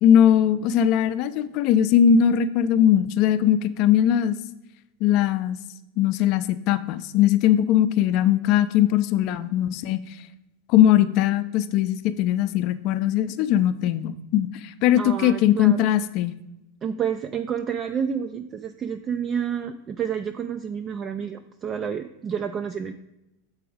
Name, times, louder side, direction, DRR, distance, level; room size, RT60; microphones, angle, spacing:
voice 1, 0.0-4.4 5.0-5.6 6.0-10.2 10.7-16.3, left 10 dB, 50° left, 12 dB, 0.5 m, -20 dB
voice 2, 15.0-15.8 16.8-22.9, right 7 dB, 30° right, 7 dB, 0.4 m, -29 dB
6.9 x 4.8 x 4.9 m, 0.89 s
hypercardioid pair, 110°, 0 cm